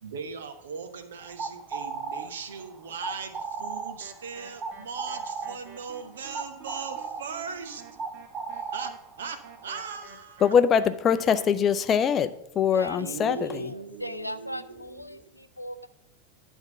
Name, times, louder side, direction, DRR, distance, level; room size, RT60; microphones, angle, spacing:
voice 1, 0.0-7.8 8.5-10.4 12.8-15.3, right 5 dB, 65° right, 9 dB, 0.9 m, -39 dB
sound 1, 1.2-10.0, right 5 dB, 25° right, 0.5 m, -37 dB
sound 2, 4.0-11.5, right 4 dB, 40° right, 1.3 m, -50 dB
voice 2, 10.4-13.7, left 7 dB, 25° left, 11 dB, 0.5 m, -23 dB
voice 3, 12.7-15.9, equal, 85° left, 10 dB, 0.5 m, -39 dB
10.5 x 3.6 x 7.2 m, 0.79 s
figure-of-eight pair, 90°, 0 cm